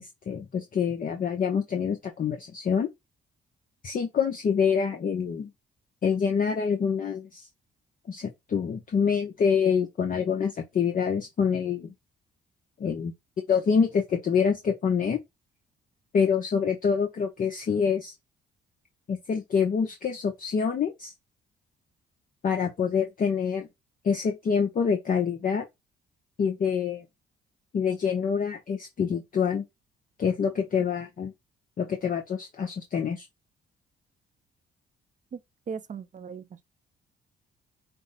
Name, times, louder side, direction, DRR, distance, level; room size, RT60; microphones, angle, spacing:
voice 1, 0.0-2.9 3.8-5.5 6.0-7.5 8.1-11.9 12.8-13.1 13.5-15.2 16.1-18.1 19.1-21.1 22.4-23.7 24.0-25.7 26.4-27.0 27.7-29.7 30.2-31.3 31.8-33.3, left 6 dB, 45° left, 0.7 m, -26 dB
voice 2, 35.7-36.6, right 6 dB, 40° right, 0.6 m, -37 dB
5.4 x 2.1 x 3.9 m
cardioid pair, 90°, 20 cm